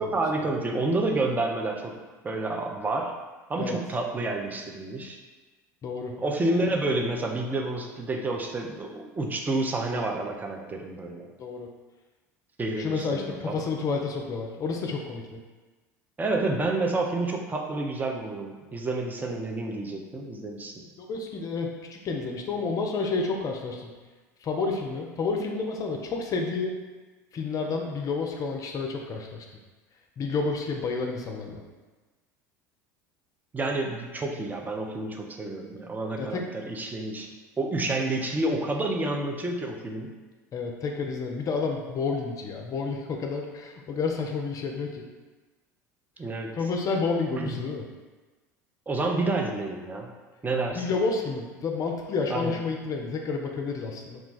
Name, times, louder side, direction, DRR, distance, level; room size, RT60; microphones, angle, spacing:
voice 1, 0.0-3.1 3.5-5.2 6.2-11.3 12.6-13.6 16.2-20.7 33.5-37.3 37.6-40.2 46.2-46.6 47.4-47.6 48.9-50.1 50.4-50.8 52.3-52.6, right 2 dB, 20° right, 2 dB, 0.5 m, -29 dB
voice 2, 5.8-6.1 11.4-11.7 12.8-15.4 21.0-23.9 24.4-26.8 27.3-29.5 30.2-31.6 36.2-36.4 40.5-45.0 46.6-47.8 50.7-54.2, left 4 dB, 40° left, 2 dB, 0.4 m, -30 dB
2.4 x 2.2 x 3.8 m, 1.3 s
hypercardioid pair, 75°, 9 cm